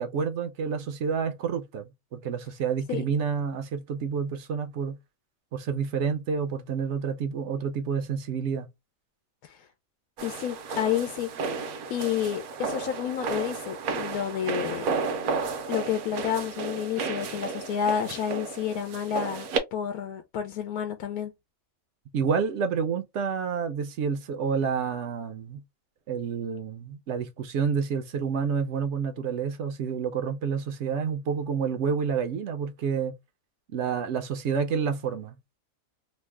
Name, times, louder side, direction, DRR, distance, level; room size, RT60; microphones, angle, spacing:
voice 1, 0.0-5.0 5.5-8.7 22.1-25.6 26.1-33.1 33.7-35.4, right 6 dB, 65° right, 0.8 m, -29 dB
voice 2, 10.2-11.3 11.6-14.9 15.7-21.3, left 9 dB, 85° left, 1.1 m, -30 dB
sound 1, 10.2-19.6, right 4 dB, 80° right, 1.1 m, -32 dB
3.1 x 2.1 x 3.3 m
omnidirectional pair, 1.5 m